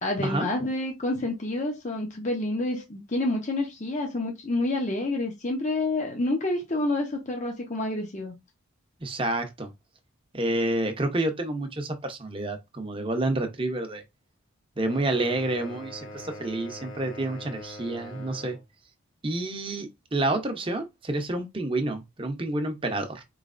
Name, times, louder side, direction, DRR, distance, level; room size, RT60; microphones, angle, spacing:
voice 1, 0.0-8.3, left 2 dB, 35° left, 0.7 m, -28 dB
voice 2, 9.0-9.7 10.3-14.0 14.8-18.6 19.2-23.2, right 2 dB, 25° right, 0.7 m, -29 dB
sound 1, 14.8-18.7, left 1 dB, 65° left, 1.5 m, -43 dB
4.5 x 3.2 x 2.5 m
head